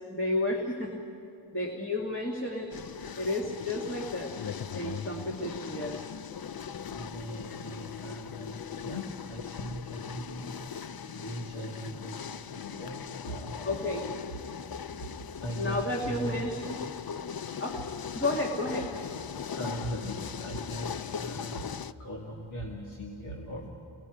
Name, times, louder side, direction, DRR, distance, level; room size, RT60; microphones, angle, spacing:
voice 1, 0.1-1.0 1.5-2.7 3.2-4.4 4.7-6.1 13.6-14.1 15.6-16.8 17.6-17.8 18.1-18.9, left 1 dB, 25° left, -2 dB, 1.8 m, -32 dB
sound 1, 2.7-21.9, left 7 dB, 50° left, 0.5 m, -39 dB
voice 2, 6.8-14.1 15.4-16.4 19.5-21.7 22.0-23.7, equal, 75° left, -3 dB, 2.2 m, -39 dB
29.5 x 19.0 x 4.9 m, 2.8 s
wide cardioid pair, 55°, 49 cm